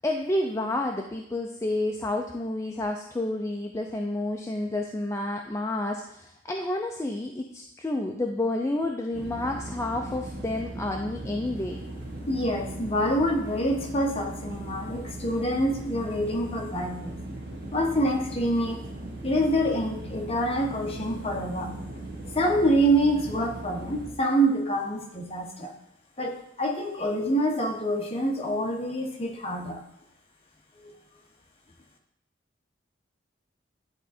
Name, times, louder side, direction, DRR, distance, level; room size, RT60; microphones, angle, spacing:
voice 1, 0.0-11.8, left 1 dB, 15° left, 2 dB, 0.4 m, -30 dB
sound 1, 9.1-24.1, right 1 dB, 55° right, 1.3 m, -38 dB
voice 2, 12.3-17.2 17.7-18.8 19.2-21.7 22.3-25.7 26.2-29.8 30.8-30.9, right 1 dB, 30° left, 0 dB, 1.1 m, -26 dB
10.0 x 3.6 x 4.3 m, 0.79 s
head